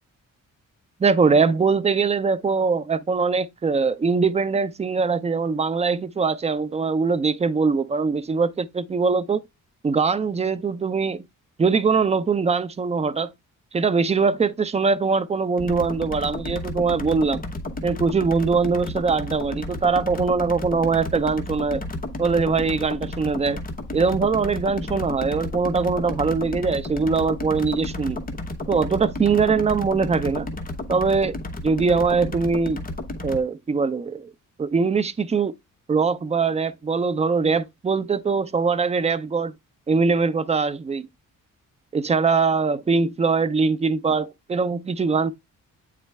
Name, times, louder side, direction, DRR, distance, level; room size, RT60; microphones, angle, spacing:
voice 1, 1.0-9.4 9.8-11.2 11.6-13.3 13.7-17.4 17.8-21.8 22.2-23.6 23.9-28.2 28.7-30.5 30.9-31.4 31.6-32.8 33.2-34.3 34.6-35.5 35.9-39.5 39.9-41.1 41.9-45.3, right 4 dB, 20° right, 0.5 m, -22 dB
sound 1, 15.6-33.4, left 2 dB, 25° left, 1.1 m, -32 dB
8.6 x 4.1 x 3.4 m
wide cardioid pair, 160°, 32 cm